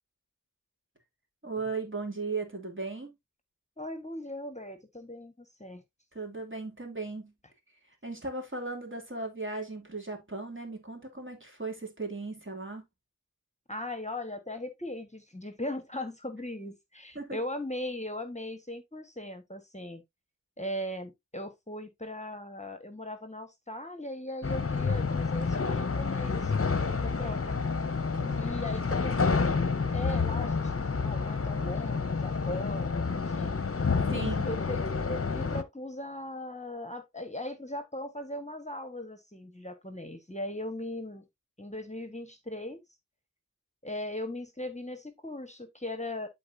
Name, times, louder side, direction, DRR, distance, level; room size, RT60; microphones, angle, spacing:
voice 1, 1.4-3.1 6.1-7.3 8.0-12.8 17.1-17.4 28.2-28.4 34.1-34.5, right 3 dB, 40° right, 2.8 m, -37 dB
voice 2, 3.8-5.8 13.7-20.0 20.6-27.6 28.3-29.7 29.9-30.7 31.0-33.6 34.1-34.8 35.1-41.3 41.6-42.8 43.8-46.3, left 1 dB, 20° left, 1.4 m, -39 dB
sound 1, 24.4-35.6, left 4 dB, 45° left, 0.9 m, -29 dB
12.0 x 4.2 x 2.7 m
wide cardioid pair, 45°, 31 cm